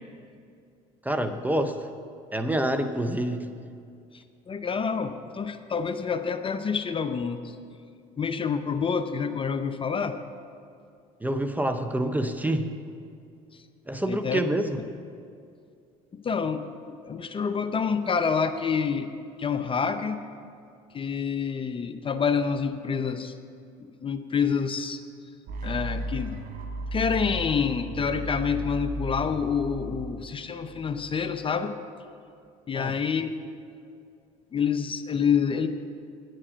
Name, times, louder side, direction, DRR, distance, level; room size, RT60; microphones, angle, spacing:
voice 1, 1.0-1.9 2.3-3.5 11.2-12.7 13.9-14.8 32.7-33.0, right 1 dB, 10° right, 8 dB, 0.6 m, -27 dB
voice 2, 4.1-7.5 8.2-10.2 14.1-14.4 16.1-19.1 19.4-20.2 20.9-23.3 24.0-25.0 25.6-26.4 26.9-31.7 32.7-33.3 34.5-35.7, left 6 dB, 30° left, 9 dB, 0.7 m, -27 dB
sound 1, 25.5-31.4, right 1 dB, 60° right, 1.1 m, -35 dB
9.6 x 7.7 x 7.4 m, 2.4 s
supercardioid pair, 75°, 17 cm